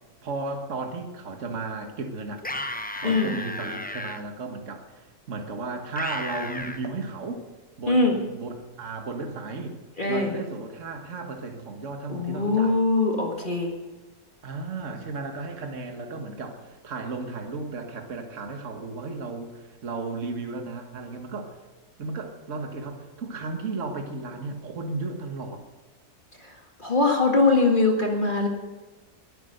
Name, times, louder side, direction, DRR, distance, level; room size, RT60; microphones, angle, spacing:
voice 1, 0.2-2.4 2.9-7.4 7.8-9.8 10.1-12.8 14.4-21.6 22.0-25.6, right 3 dB, 50° right, 4 dB, 1.8 m, -34 dB
sound 1, 2.4-4.2 6.0-6.8, left 1 dB, 15° left, 0.3 m, -33 dB
voice 2, 3.0-3.3 7.9-8.2 10.0-10.4 12.1-13.7 26.4-26.5 26.8-28.5, left 3 dB, 30° left, 1 dB, 1.9 m, -22 dB
21.5 x 9.1 x 6.6 m, 1.2 s
omnidirectional pair, 1.6 m